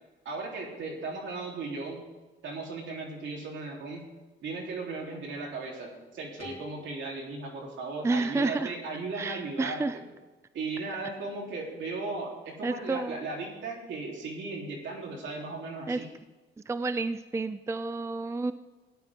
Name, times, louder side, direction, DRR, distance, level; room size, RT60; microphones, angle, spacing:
voice 1, 0.3-2.0 2.4-4.1 4.4-10.1 10.5-16.1, right 3 dB, 70° right, -1 dB, 3.6 m, -36 dB
sound 1, 6.4-9.2, left 4 dB, 30° left, 4.1 m, -52 dB
voice 2, 8.0-8.7 9.1-9.9 12.6-13.2 15.9-16.0 16.7-18.5, right 3 dB, 15° right, 13 dB, 0.4 m, -30 dB
17.0 x 11.0 x 3.7 m, 1.2 s
cardioid pair, 90°, 20 cm